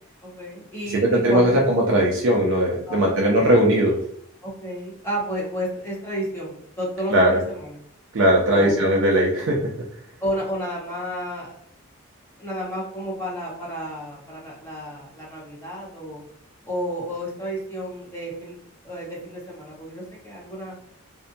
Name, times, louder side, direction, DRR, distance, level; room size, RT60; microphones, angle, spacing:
voice 1, 0.2-1.6 2.9-3.4 4.4-7.8 8.4-8.9 10.2-11.5 12.4-16.2 16.7-18.6 18.8-20.7, equal, 10° left, -6 dB, 0.9 m, -31 dB
voice 2, 0.9-4.0 7.1-7.4 8.1-9.6, right 1 dB, 60° right, -1 dB, 0.5 m, -19 dB
2.6 x 2.1 x 2.5 m, 0.69 s
head